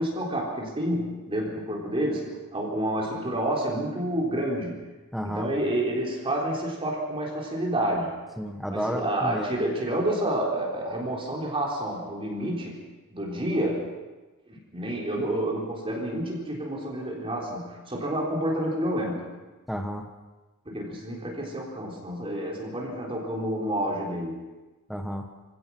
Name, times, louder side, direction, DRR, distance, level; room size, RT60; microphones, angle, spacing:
voice 1, 0.0-4.8 5.2-8.1 8.7-12.8 13.1-13.9 14.5-19.2 20.7-24.4, right 1 dB, 25° right, -2 dB, 3.8 m, -29 dB
voice 2, 5.1-5.5 8.4-9.6 19.7-20.1 24.9-25.3, equal, ahead, 4 dB, 1.1 m, -31 dB
25.0 x 17.0 x 6.1 m, 1.2 s
head